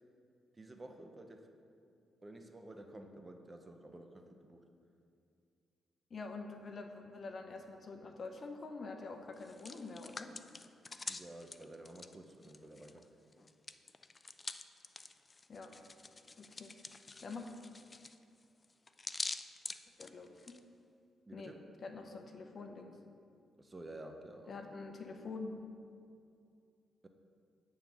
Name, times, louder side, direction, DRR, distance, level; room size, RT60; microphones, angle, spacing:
voice 1, 0.5-1.5 2.2-4.7 11.1-13.1 21.3-21.6 23.6-24.5, right 1 dB, 20° right, 5 dB, 0.6 m, -51 dB
voice 2, 6.1-10.3 15.5-15.7 16.4-16.7 17.2-17.5 20.0-20.4 21.3-21.6 21.8-23.0 24.5-25.5, left 3 dB, 45° left, 5 dB, 0.7 m, -46 dB
Hands, 9.3-13.0 13.3-20.6, left 3 dB, 30° left, 0.3 m, -46 dB
8.5 x 3.7 x 6.0 m, 2.4 s
cardioid pair, 90°, 0 cm